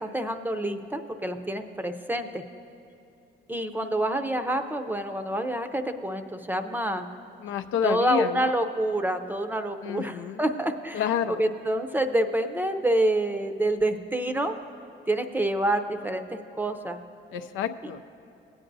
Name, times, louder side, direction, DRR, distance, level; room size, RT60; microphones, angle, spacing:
voice 1, 0.0-2.4 3.5-7.1 7.8-11.0 11.4-14.5 15.1-17.0, right 1 dB, 10° right, 7 dB, 0.6 m, -27 dB
voice 2, 7.4-8.5 9.8-10.4 10.9-11.5 17.3-18.0, left 8 dB, 85° left, 8 dB, 0.5 m, -29 dB
19.0 x 8.8 x 2.6 m, 2.9 s
cardioid pair, 90°, 20 cm